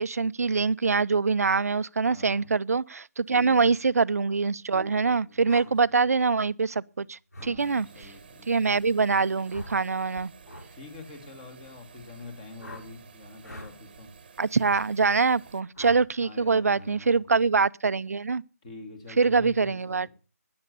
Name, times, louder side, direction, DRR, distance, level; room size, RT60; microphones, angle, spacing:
voice 1, 0.0-7.9 8.5-10.3 14.4-18.4 19.2-20.1, right 4 dB, 65° right, 0.6 m, -24 dB
voice 2, 2.1-2.5 3.3-3.7 4.7-5.7 7.4-8.6 10.7-14.1 15.2-15.3 16.2-17.4 18.6-20.1, left 3 dB, 20° left, 2.5 m, -45 dB
sound 1, 5.5-5.7 7.3-7.5 9.5-9.8 10.4-10.7 12.6-12.9 13.4-13.7 14.7-14.8 15.7-16.0, left 1 dB, 80° left, 7.2 m, -42 dB
sound 2, 7.6-15.6, right 6 dB, 35° right, 1.3 m, -52 dB
12.5 x 9.6 x 6.9 m
hypercardioid pair, 170°, 9 cm